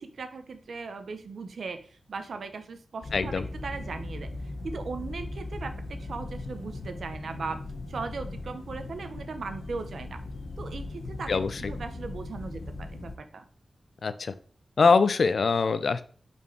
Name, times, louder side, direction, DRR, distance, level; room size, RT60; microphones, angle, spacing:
voice 1, 0.0-3.3 3.6-4.3 4.6-7.6 7.9-10.2 10.6-13.4, right 4 dB, 80° right, 8 dB, 0.8 m, -38 dB
sound 1, 3.0-13.2, left 2 dB, 85° left, 0.9 m, -38 dB
voice 2, 3.1-3.4 11.3-11.6 14.0-14.3 14.8-16.0, left 4 dB, 65° left, 13 dB, 0.5 m, -23 dB
5.8 x 4.5 x 4.5 m, 0.42 s
wide cardioid pair, 105°, 0 cm